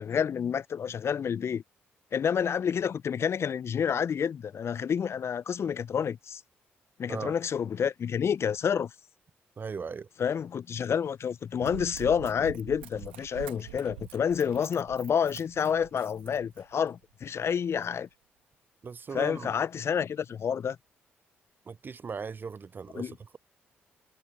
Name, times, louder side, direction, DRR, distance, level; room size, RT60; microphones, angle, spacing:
voice 1, 0.0-1.6 2.1-6.4 7.0-8.9 10.2-18.1 19.1-20.8 22.9-23.1, left 7 dB, 50° left, 0.6 m, -29 dB
voice 2, 9.6-10.1 18.8-19.5 21.7-23.4, right 5 dB, 35° right, 0.4 m, -38 dB
Run, 11.6-16.9 17.5-17.6, right 16 dB, 85° right, 1.9 m, -45 dB
hypercardioid pair, 40°, 6 cm